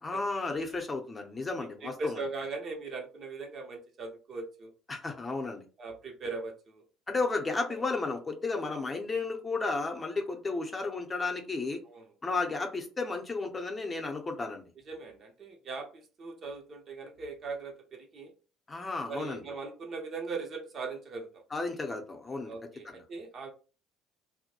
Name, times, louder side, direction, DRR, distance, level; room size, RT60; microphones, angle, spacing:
voice 1, 0.0-2.2 4.9-5.6 7.1-11.8 12.2-14.6 18.7-19.4 21.5-22.5 22.8-23.0, left 3 dB, 30° left, 3 dB, 0.7 m, -33 dB
voice 2, 1.8-4.7 5.8-6.8 7.7-7.8 11.9-12.4 14.9-18.3 19.1-21.4 22.4-23.5, right 3 dB, 50° right, 3 dB, 0.7 m, -40 dB
2.2 x 2.1 x 2.8 m, 0.35 s
hypercardioid pair, 65°, 0 cm